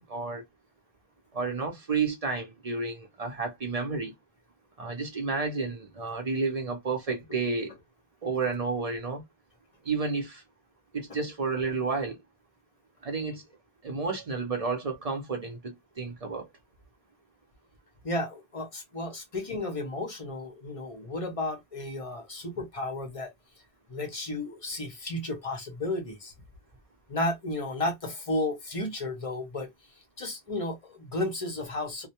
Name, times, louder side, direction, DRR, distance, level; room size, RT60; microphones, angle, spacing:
voice 1, 0.1-0.4 1.3-4.1 4.8-7.7 8.2-9.2 9.8-10.4 10.9-12.2 13.0-13.4 13.8-16.5, right 4 dB, 45° right, 0.6 m, -31 dB
voice 2, 18.0-23.3 23.9-26.3 27.1-29.7 30.2-32.1, left 2 dB, 40° left, 0.6 m, -33 dB
2.1 x 2.1 x 2.8 m
omnidirectional pair, 1.1 m